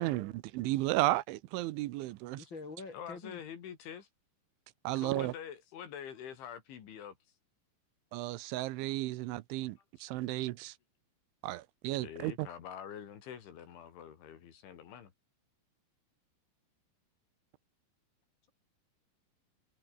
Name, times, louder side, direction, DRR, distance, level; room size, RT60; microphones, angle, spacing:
voice 1, 0.0-2.5 4.9-5.3 8.1-10.7 11.4-12.5, right 17 dB, 80° right, 3.3 m, -34 dB
voice 2, 2.4-3.4, left 4 dB, 30° left, 2.7 m, -45 dB
voice 3, 2.9-4.1 5.0-7.2 9.5-9.6 10.3-10.4 12.0-15.1, left 8 dB, 75° left, 5.4 m, -46 dB
omnidirectional pair, 5.5 m